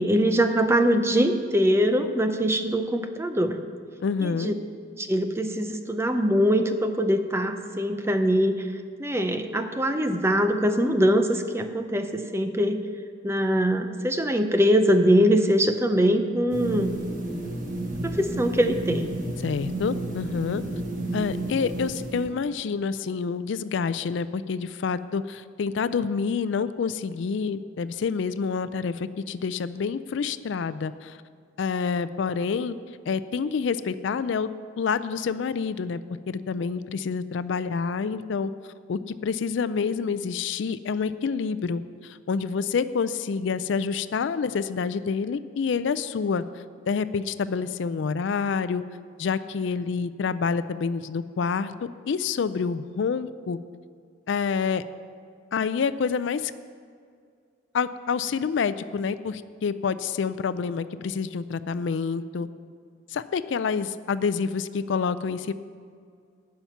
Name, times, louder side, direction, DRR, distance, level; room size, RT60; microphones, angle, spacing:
voice 1, 0.0-3.6 4.2-4.5 5.0-8.7 9.0-12.8 13.2-17.0 18.0-19.1, equal, 15° right, 7 dB, 0.5 m, -23 dB
voice 2, 4.0-4.5 19.4-20.6 21.1-31.2 31.6-32.7 33.1-34.5 34.8-36.0 36.3-38.5 38.9-48.8 49.2-53.6 54.3-54.8 55.5-56.5 57.7-62.5 63.1-65.5, left 5 dB, 65° left, 14 dB, 0.4 m, -28 dB
sound 1, 16.5-22.3, right 1 dB, 40° right, 1.6 m, -32 dB
11.5 x 5.7 x 9.1 m, 2.2 s
head